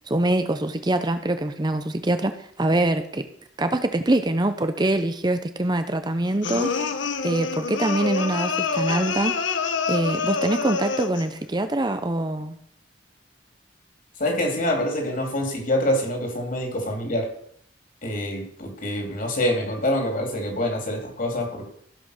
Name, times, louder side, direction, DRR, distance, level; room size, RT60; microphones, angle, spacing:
voice 1, 0.1-3.2 3.6-6.7 7.2-9.4 9.9-12.6, right 1 dB, 25° right, 9 dB, 0.7 m, -24 dB
sound 1, 6.4-11.3, left 5 dB, 75° left, 1.0 m, -27 dB
voice 2, 14.2-17.3 18.0-21.7, left 1 dB, 45° left, 2 dB, 3.2 m, -26 dB
15.5 x 5.8 x 6.6 m, 0.65 s
head